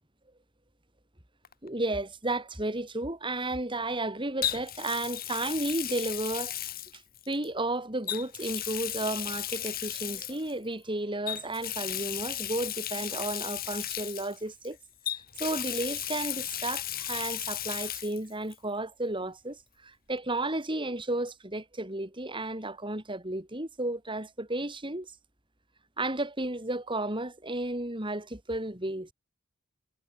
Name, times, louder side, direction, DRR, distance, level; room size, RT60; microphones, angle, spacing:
Water tap faucet, 1.4-1.7 4.4-7.5 8.0-10.5 11.3-14.7 15.0-18.2 18.5-18.6 20.2-20.3, left 12 dB, 45° left, 2.2 m, -35 dB
voice 1, 1.6-6.6 6.9-7.0 7.3-14.8 15.4-25.1 26.0-29.1, right 2 dB, 25° right, 4.7 m, -33 dB
head